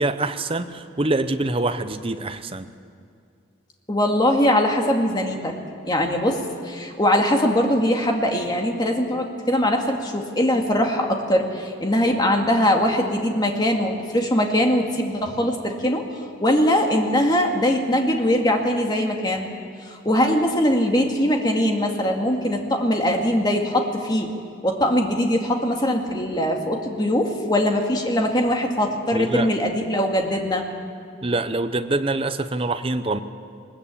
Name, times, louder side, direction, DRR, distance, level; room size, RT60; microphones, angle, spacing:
voice 1, 0.0-2.7 29.1-29.5 31.2-33.2, right 2 dB, 30° right, 10 dB, 0.8 m, -25 dB
voice 2, 3.9-5.5 5.9-16.0 16.4-19.5 19.9-24.3 24.6-30.6, left 1 dB, 20° left, 2 dB, 2.2 m, -21 dB
21.0 x 20.5 x 8.6 m, 2.4 s
head